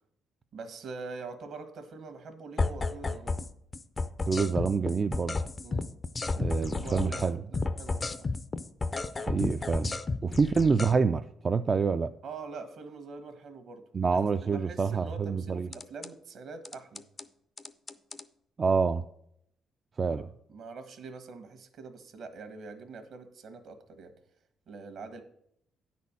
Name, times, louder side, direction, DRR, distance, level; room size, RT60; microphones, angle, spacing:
voice 1, 0.5-3.4 5.6-5.9 6.6-8.3 10.2-10.4 12.2-14.2 14.5-17.0 20.0-20.2 20.5-24.1 24.7-25.2, right 4 dB, 70° right, 8 dB, 1.2 m, -44 dB
sound 1, 2.6-3.5 3.7-7.3 7.5-10.9 15.7-16.1 16.6-17.2 17.6-18.2, left 3 dB, 30° left, 0.5 m, -32 dB
voice 2, 4.3-5.4 6.3-7.4 9.2-10.0 10.2-12.1 13.9-15.7 18.6-19.0 20.0-20.3, right 5 dB, 35° right, 8 dB, 0.3 m, -27 dB
9.4 x 4.3 x 7.1 m, 0.73 s
cardioid pair, 90°, 0 cm